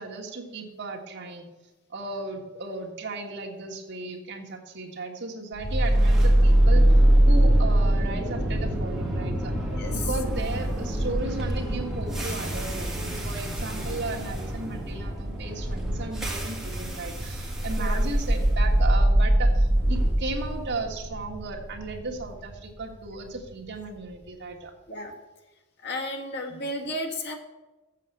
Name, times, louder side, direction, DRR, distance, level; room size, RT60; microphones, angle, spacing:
voice 1, 0.0-1.5 1.9-6.9 7.3-9.5 9.9-24.7 26.5-26.6, right 3 dB, 55° right, 0 dB, 1.6 m, -35 dB
sound 1, 5.6-23.7, right 1 dB, ahead, 1.9 m, -23 dB
voice 2, 9.7-10.1 17.8-18.0 24.9-25.1 25.8-27.3, left 1 dB, 55° left, 1 dB, 1.7 m, -33 dB
7.5 x 7.4 x 6.6 m, 1.2 s
head